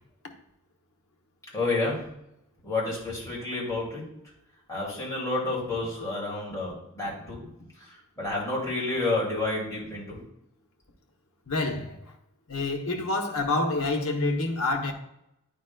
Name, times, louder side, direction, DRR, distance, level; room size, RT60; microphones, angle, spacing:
voice 1, 1.5-2.1 2.6-4.1 4.7-7.4 7.7-10.2, left 2 dB, 15° left, 2.3 m, -30 dB
voice 2, 11.5-12.0 12.5-14.9, left 2 dB, 70° left, 1.0 m, -27 dB
9.1 x 5.4 x 2.3 m
head